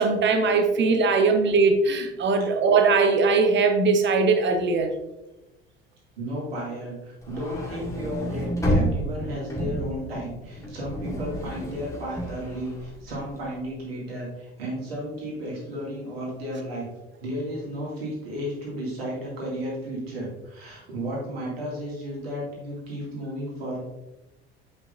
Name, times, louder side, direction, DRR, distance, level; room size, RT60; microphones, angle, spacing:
voice 1, 0.0-4.9, right 4 dB, 35° right, 6 dB, 1.1 m, -20 dB
voice 2, 6.2-16.9 17.2-23.8, equal, 75° right, -3 dB, 2.3 m, -33 dB
sound 1, 7.2-13.5, equal, 10° left, 2.0 m, -30 dB
7.9 x 5.8 x 2.6 m, 1.0 s
figure-of-eight pair, 60°, 30 cm